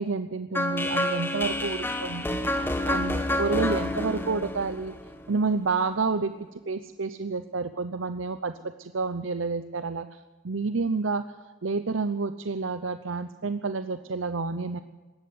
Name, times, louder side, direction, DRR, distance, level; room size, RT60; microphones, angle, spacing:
voice 1, 0.0-2.4 2.9-4.9 5.3-6.3 6.7-10.2 10.4-11.2 11.6-14.8, right 4 dB, 70° right, 11 dB, 0.7 m, -29 dB
sound 1, 0.5-5.5, left 1 dB, 10° left, 1.4 m, -29 dB
20.0 x 15.5 x 9.4 m, 1.3 s
head